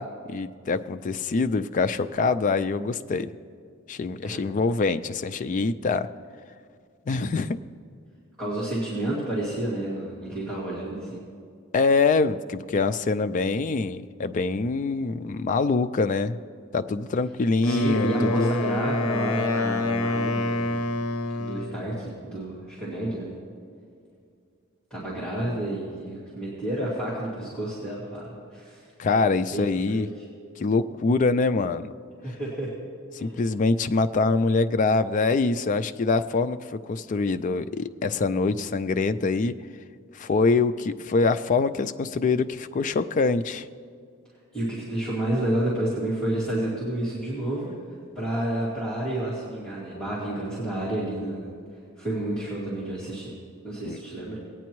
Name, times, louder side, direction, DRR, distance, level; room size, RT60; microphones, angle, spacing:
voice 1, 0.0-3.3 3.9-6.1 7.1-7.6 11.7-16.4 16.7-18.5 29.0-30.1 30.6-31.9 33.1-39.5 40.1-43.7 53.8-54.0, left 3 dB, 35° left, 10 dB, 0.3 m, -24 dB
voice 2, 8.4-11.2 17.6-20.7 21.4-23.3 24.9-28.9 29.5-29.7 29.9-30.1 32.2-32.7 33.2-33.4 44.5-47.7 48.2-51.5 52.0-53.3 53.6-54.4, right 1 dB, 5° left, -11 dB, 2.2 m, -30 dB
Wind instrument woodwind instrument, 17.6-21.8, left 2 dB, 85° left, 0.6 m, -27 dB
18.5 x 9.3 x 3.1 m, 2.2 s
head